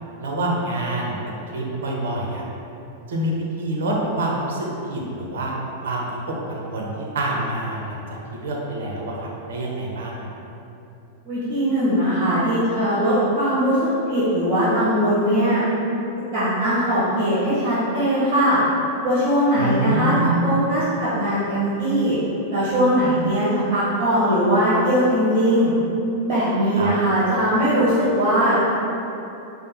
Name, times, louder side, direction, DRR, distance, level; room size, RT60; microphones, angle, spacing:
voice 1, 0.2-1.2 1.5-2.5 3.1-5.5 5.8-8.0 8.3-10.3 19.6-20.6 26.7-26.9, right 1 dB, 65° right, -2 dB, 0.6 m, -26 dB
voice 2, 11.2-15.6 16.3-18.6 19.0-22.2 22.5-25.7 26.2-28.6, equal, 35° right, -10 dB, 1.0 m, -20 dB
5.0 x 2.0 x 2.9 m, 3.0 s
figure-of-eight pair, 95°, 0 cm